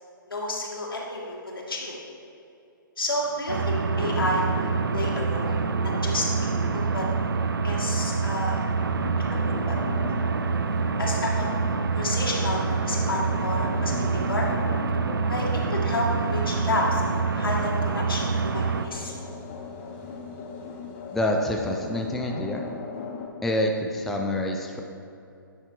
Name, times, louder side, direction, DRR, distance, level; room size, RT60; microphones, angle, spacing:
voice 1, 0.3-1.3 1.7-1.9 3.0-6.3 6.6-7.1 7.6-8.6 9.3-9.8 11.0-11.7 11.9-14.5 15.3-19.1, left 1 dB, 85° left, -3 dB, 1.8 m, -30 dB
Thunder, 3.1-20.1, right 2 dB, 35° right, 1.7 m, -41 dB
sound 1, 3.5-18.9, right 5 dB, 80° right, 0.5 m, -26 dB
sound 2, 8.8-23.3, left 4 dB, 35° left, 1.0 m, -38 dB
voice 2, 21.1-22.6 23.4-24.8, left 1 dB, ahead, 1 dB, 0.3 m, -26 dB
9.6 x 4.4 x 4.5 m, 2.6 s
figure-of-eight pair, 135°, 12 cm